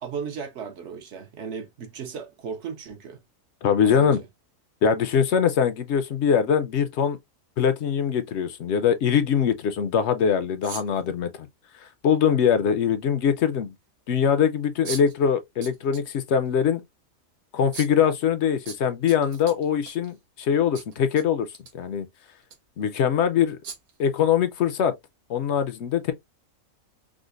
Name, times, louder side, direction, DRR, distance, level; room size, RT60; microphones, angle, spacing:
voice 1, 0.0-3.2 3.8-4.3, right 6 dB, 60° right, 0.9 m, -36 dB
voice 2, 3.6-4.2 4.8-7.2 7.6-11.5 11.8-13.7 14.1-16.8 17.5-21.5 21.7-22.1 22.8-23.6 24.0-24.9 25.3-26.1, left 7 dB, 65° left, 0.7 m, -22 dB
sound 1, 10.6-11.0 12.5-12.6 14.8-15.2 15.6-16.1 16.4-16.5 17.7-18.0 18.7-20.1 20.7-21.2 21.5-21.7 22.4-22.6 23.6-24.0, right 6 dB, 90° right, 1.4 m, -38 dB
4.9 x 2.1 x 2.4 m
omnidirectional pair, 1.5 m